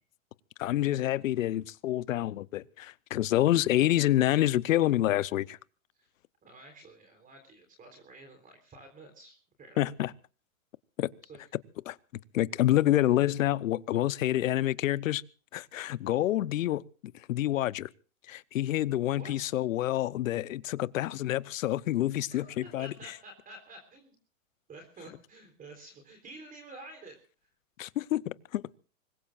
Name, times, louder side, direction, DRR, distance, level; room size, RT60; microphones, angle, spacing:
voice 1, 0.6-5.6 9.8-10.1 11.0-11.1 11.9-12.0 12.3-15.2 15.5-16.8 17.1-17.9 18.3-22.9 27.8-28.6, left 14 dB, 65° left, 0.9 m, -27 dB
voice 2, 6.4-9.9 11.2-11.4 19.2-19.5 22.1-24.2 24.7-27.2, right 2 dB, 20° right, 3.7 m, -50 dB
25.5 x 21.0 x 2.5 m
hypercardioid pair, 125°, 42 cm